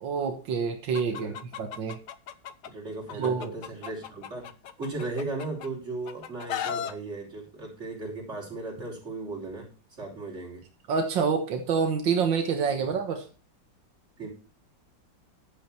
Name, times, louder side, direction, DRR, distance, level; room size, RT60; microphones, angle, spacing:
voice 1, 0.0-2.0 3.2-3.5 10.9-13.3, right 6 dB, 90° right, 5 dB, 2.1 m, -27 dB
Chicken rooster, 0.9-2.7 3.1-5.7 6.1-6.9, left 9 dB, 65° left, 1.4 m, -36 dB
voice 2, 2.7-4.5 4.8-9.7 10.0-10.6 12.8-12.9 14.2-14.3, right 2 dB, 40° right, -2 dB, 5.7 m, -36 dB
11.0 x 8.8 x 4.6 m, 0.34 s
omnidirectional pair, 2.0 m